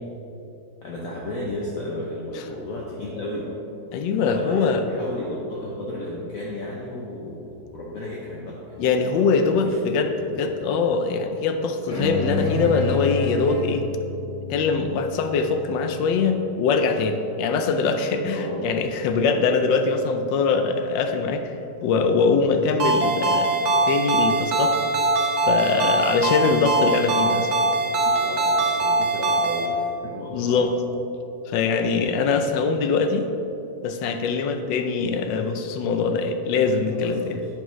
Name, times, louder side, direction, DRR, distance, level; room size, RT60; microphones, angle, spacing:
voice 1, 0.8-3.5 4.2-10.5 18.3-18.8 27.9-30.8 36.9-37.5, left 1 dB, 60° left, -4 dB, 1.1 m, -34 dB
voice 2, 3.9-4.8 8.8-10.1 10.4-13.8 14.5-21.5 21.8-24.8 25.5-27.5 30.3-30.7 31.5-33.3 33.8-37.4, left 4 dB, 90° left, 7 dB, 1.3 m, -22 dB
sound 1, 11.9-16.6, left 2 dB, 25° left, 1.7 m, -30 dB
Ringtone, 22.8-29.7, right 2 dB, 65° right, 1.2 m, -22 dB
8.8 x 6.2 x 3.1 m, 2.9 s
omnidirectional pair, 1.9 m